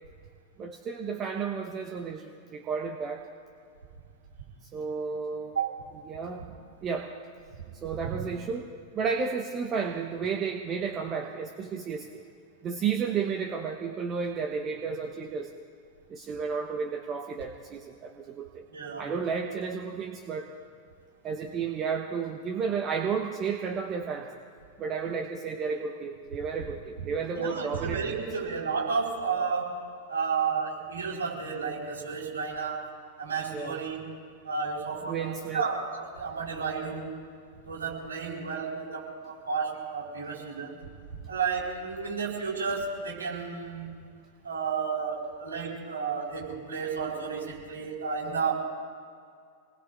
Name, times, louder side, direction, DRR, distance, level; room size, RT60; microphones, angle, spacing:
voice 1, 0.6-3.2 4.7-5.6 6.1-6.5 6.8-7.1 7.8-12.2 12.6-15.5 16.1-18.6 19.0-20.5 21.2-24.3 24.8-28.2 33.5-33.8 35.0-35.7, right 6 dB, 30° right, 4 dB, 0.9 m, -32 dB
voice 2, 5.5-5.9 8.0-8.2 18.7-19.1 27.3-29.8 30.1-32.8 33.2-34.1 34.4-37.1 37.6-40.8 41.1-43.9 44.4-48.5, right 5 dB, 70° right, -3 dB, 4.1 m, -32 dB
25.5 x 20.0 x 2.5 m, 2.2 s
figure-of-eight pair, 90°, 0 cm